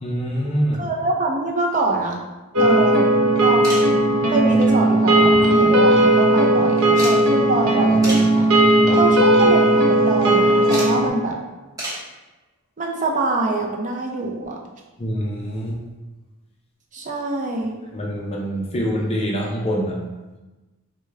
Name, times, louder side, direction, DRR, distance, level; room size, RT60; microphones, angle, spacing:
voice 1, 0.0-0.8 8.9-9.0 15.0-15.8 17.9-20.0, equal, 25° left, -2 dB, 0.5 m, -25 dB
voice 2, 0.8-2.2 2.6-3.1 3.4-3.9 4.3-8.5 9.0-11.4 12.8-14.6 16.9-17.8, right 2 dB, 35° right, 0 dB, 0.5 m, -24 dB
sound 1, 2.5-11.1, right 1 dB, 75° right, 0.7 m, -16 dB
sound 2, 3.6-4.0 5.2-5.8 6.1-6.2 6.9-7.2 8.0-8.3 9.0-9.3 10.7-10.9 11.8-12.1 13.7-13.8 15.2-15.3 15.5-15.6, right 1 dB, 15° right, 1.1 m, -30 dB
4.6 x 2.2 x 3.2 m, 1.1 s
head